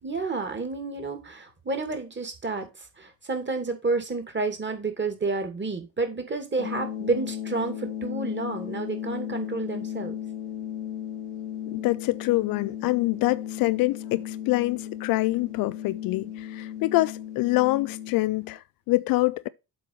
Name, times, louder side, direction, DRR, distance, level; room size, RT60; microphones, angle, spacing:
voice 1, 0.0-2.7 3.0-10.2, right 3 dB, 25° right, 2.6 m, -30 dB
sound 1, 6.6-18.6, left 10 dB, 80° left, 1.2 m, -35 dB
voice 2, 11.7-19.5, left 20 dB, 50° left, 0.5 m, -25 dB
7.8 x 4.6 x 5.6 m
figure-of-eight pair, 45°, 45 cm